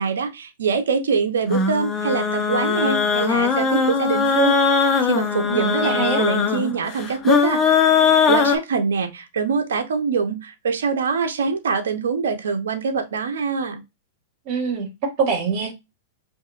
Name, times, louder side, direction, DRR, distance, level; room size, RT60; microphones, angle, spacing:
voice 1, 0.0-4.6 5.0-7.9 8.3-13.8, right 5 dB, 85° right, 0.8 m, -24 dB
sound 1, 1.5-8.6, left 5 dB, 25° left, 1.0 m, -20 dB
voice 2, 5.5-6.2 14.4-15.7, right 5 dB, 50° right, 2.4 m, -25 dB
5.4 x 2.7 x 2.5 m
hypercardioid pair, 125°, 0 cm